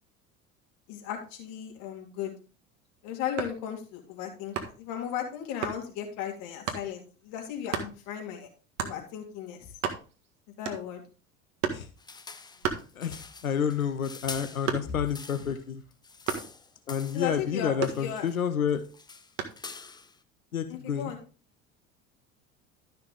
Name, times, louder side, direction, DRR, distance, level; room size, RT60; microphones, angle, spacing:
voice 1, 0.9-2.3 3.0-8.5 8.8-9.8 10.6-11.0 14.9-15.0 17.1-18.3 20.7-21.2, left 9 dB, 55° left, 2 dB, 2.8 m, -36 dB
sound 1, 3.3-3.7 4.5-4.9 5.6-5.8 6.7-6.9 7.7-8.0 8.8-9.0 9.4-9.5 9.7-10.3 10.6-11.1 11.6-11.9 12.6-13.4 13.8-15.1 16.3-16.6 17.8-18.5 19.4-19.7, right 7 dB, 60° right, 1.7 m, -33 dB
sound 2, 12.0-15.6 15.9-17.4 17.8-18.4 18.7-20.2, left 4 dB, 10° left, 0.6 m, -45 dB
voice 2, 12.7-15.8 16.9-18.8 20.5-21.1, left 8 dB, 80° left, 10 dB, 0.9 m, -30 dB
13.0 x 5.8 x 3.7 m, 0.35 s
figure-of-eight pair, 70°, 41 cm